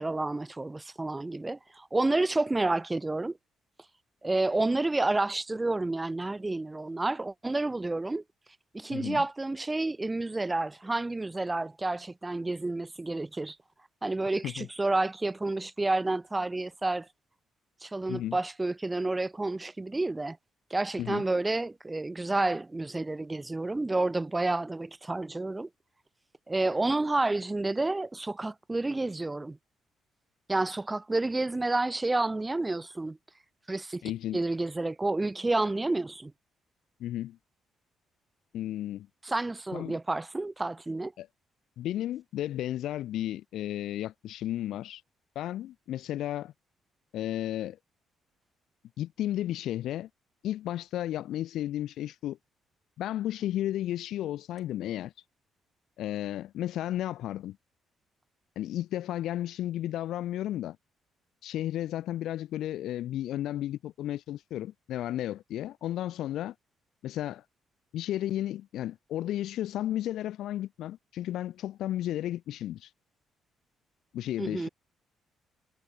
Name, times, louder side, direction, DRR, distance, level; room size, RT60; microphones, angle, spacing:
voice 1, 0.0-3.4 4.2-8.2 8.7-13.6 14.0-17.1 17.8-20.4 20.7-25.7 26.5-29.6 30.5-33.2 33.7-34.0 34.3-36.3 39.2-41.1 74.4-74.7, right 2 dB, 15° right, 0.5 m, -30 dB
voice 2, 8.9-9.2 14.4-14.7 18.1-18.4 21.0-21.2 34.0-34.4 37.0-37.4 38.5-39.1 39.7-40.0 41.2-41.3 41.8-45.0 45.4-46.5 47.1-47.8 49.0-50.1 50.4-52.4 53.0-55.1 56.0-57.6 58.6-60.8 61.4-66.5 67.0-67.4 67.9-72.9 74.1-74.7, left 13 dB, 80° left, 0.3 m, -33 dB
cardioid pair, 90°, 0 cm